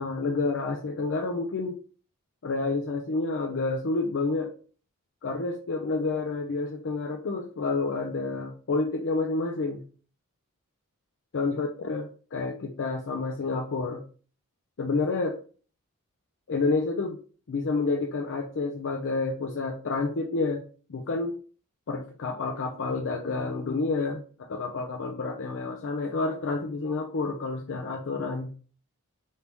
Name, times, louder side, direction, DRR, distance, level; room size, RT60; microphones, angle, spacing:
voice 1, 0.0-1.8 2.4-4.5 5.2-9.8 11.3-14.0 14.8-15.4 16.5-17.2 17.5-20.6 20.9-21.3 21.9-24.2 24.5-28.5, left 3 dB, 55° left, 3 dB, 0.5 m, -29 dB
3.4 x 2.7 x 4.4 m, 0.40 s
head